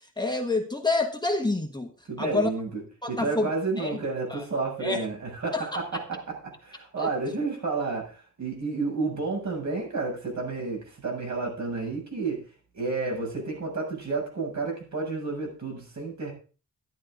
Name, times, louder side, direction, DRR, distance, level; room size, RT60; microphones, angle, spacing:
voice 1, 0.2-1.9 2.2-2.5 3.0-3.5 3.8-4.0 4.3-4.4 4.8-5.1 5.5-5.8 7.0-7.1, left 3 dB, 15° left, 3 dB, 1.4 m, -27 dB
voice 2, 2.1-2.8 3.1-12.4 12.7-16.3, right 3 dB, 60° right, 0 dB, 7.2 m, -31 dB
13.0 x 11.5 x 3.8 m, 0.35 s
wide cardioid pair, 140°, 32 cm